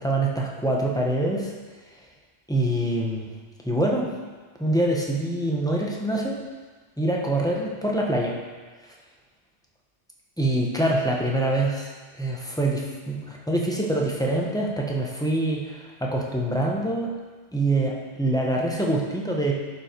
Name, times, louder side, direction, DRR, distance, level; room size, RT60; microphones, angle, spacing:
voice 1, 0.0-1.5 2.5-3.3 3.6-4.1 4.6-6.4 7.0-8.4 10.4-11.9 12.2-17.1 17.5-19.5, right 1 dB, 5° left, -2 dB, 1.0 m, -25 dB
11.0 x 5.5 x 4.6 m, 1.4 s
omnidirectional pair, 1.2 m